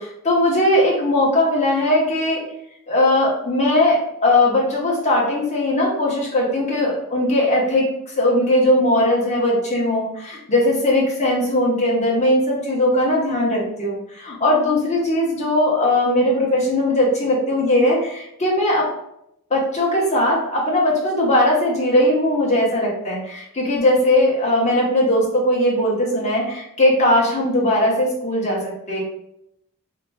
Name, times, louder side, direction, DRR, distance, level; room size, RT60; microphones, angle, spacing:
voice 1, 0.2-2.4 2.9-7.9 8.2-18.9 19.5-29.0, left 1 dB, 30° left, -5 dB, 1.0 m, -19 dB
3.9 x 2.9 x 2.3 m, 0.80 s
head